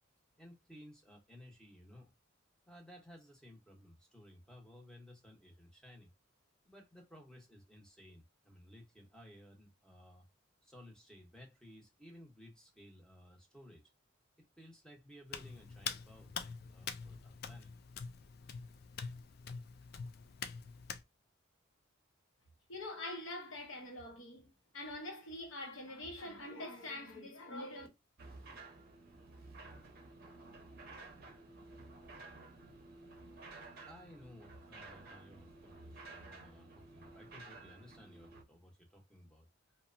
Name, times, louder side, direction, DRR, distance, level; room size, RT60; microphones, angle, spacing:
voice 1, 0.4-2.1 2.7-6.1 6.6-10.3 10.6-13.8 14.4-17.7 33.9-39.5, equal, 5° left, 0.8 m, -57 dB
Hands, 15.3-21.0, left 6 dB, 50° left, 0.3 m, -45 dB
voice 2, 22.7-24.5 24.7-27.9, left 1 dB, 75° left, 0.9 m, -44 dB
sound 1, 28.2-38.4, right 3 dB, 50° right, 0.7 m, -53 dB
2.9 x 2.1 x 2.5 m
head